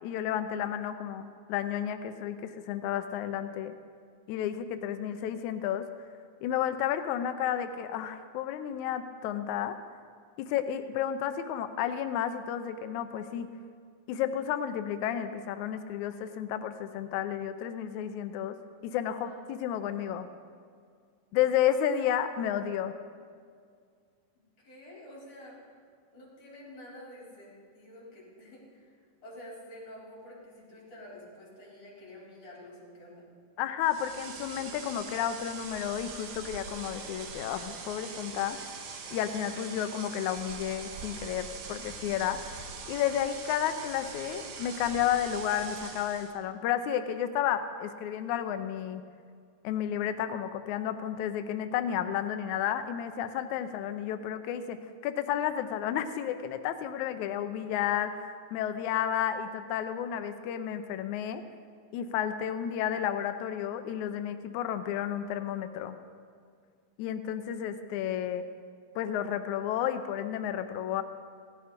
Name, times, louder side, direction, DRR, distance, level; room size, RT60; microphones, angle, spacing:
voice 1, 0.0-3.8 4.3-5.9 6.4-9.8 10.4-13.5 14.1-18.6 18.8-20.3 21.3-22.9 33.6-38.6 39.1-49.0 49.6-54.8 55.0-61.4 61.9-65.9 67.0-68.4 68.9-71.0, left 10 dB, 85° left, 9 dB, 1.7 m, -32 dB
voice 2, 19.1-19.4 24.6-25.6 26.1-29.0 29.2-33.3, left 1 dB, 45° left, -6 dB, 5.7 m, -49 dB
sound 1, 33.8-46.4, right 5 dB, 85° right, 3.2 m, -43 dB
16.5 x 13.0 x 5.1 m, 2.1 s
omnidirectional pair, 4.2 m